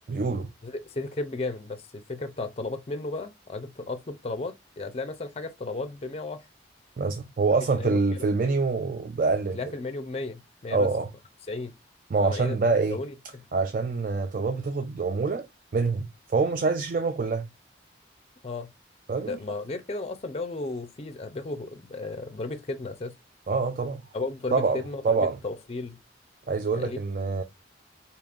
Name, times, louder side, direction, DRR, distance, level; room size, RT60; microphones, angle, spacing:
voice 1, 0.1-0.5 7.0-9.6 10.7-11.1 12.1-13.0 13.5-15.5 15.7-17.5 19.1-19.4 23.5-24.0 24.5-24.8 25.0-25.4 26.5-27.4, right 4 dB, 45° right, 0.4 m, -25 dB
voice 2, 0.6-6.4 7.7-8.3 9.5-10.9 11.5-11.7 12.2-12.6 12.9-13.5 18.4-18.7 19.2-23.2 24.1-26.0 26.7-27.0, left 3 dB, 30° left, 0.4 m, -34 dB
5.0 x 2.9 x 2.4 m
head